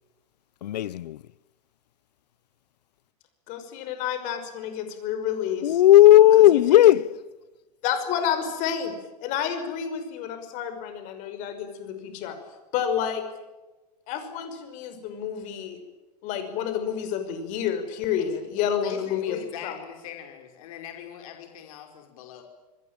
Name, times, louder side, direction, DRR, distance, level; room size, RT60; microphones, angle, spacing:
voice 1, 0.6-1.2 5.6-7.1, left 13 dB, 90° left, 0.9 m, -15 dB
voice 2, 3.5-5.8 6.4-6.9 7.8-8.9 9.2-12.4 12.7-13.3 14.1-15.8 16.2-19.8, left 8 dB, 40° left, 5.6 m, -30 dB
voice 3, 18.6-22.4, left 10 dB, 60° left, 5.1 m, -41 dB
28.0 x 20.5 x 9.1 m
supercardioid pair, 155°, 21 cm